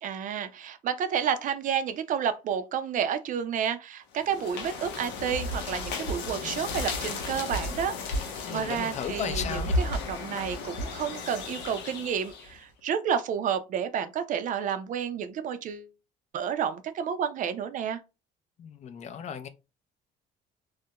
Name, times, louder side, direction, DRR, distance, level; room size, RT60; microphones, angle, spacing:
voice 1, 0.0-15.9 16.3-18.0, right 8 dB, 50° right, 0.4 m, -30 dB
sound 1, 4.2-12.6, left 2 dB, 90° left, 0.6 m, -34 dB
voice 2, 8.4-9.7 18.6-19.5, left 8 dB, 40° left, 0.4 m, -35 dB
2.3 x 2.1 x 2.8 m
cardioid pair, 110°, 17 cm